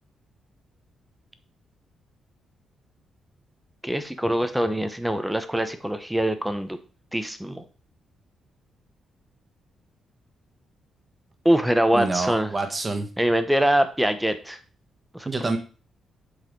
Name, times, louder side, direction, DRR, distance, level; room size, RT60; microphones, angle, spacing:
voice 1, 3.8-6.8 7.1-7.6 11.4-12.5 13.2-14.6 15.1-15.3, right 1 dB, 5° right, 9 dB, 0.9 m, -23 dB
voice 2, 11.9-13.1 15.2-15.6, right 3 dB, 25° right, 5 dB, 1.5 m, -27 dB
7.7 x 4.9 x 5.3 m, 0.36 s
cardioid pair, 135°, 0 cm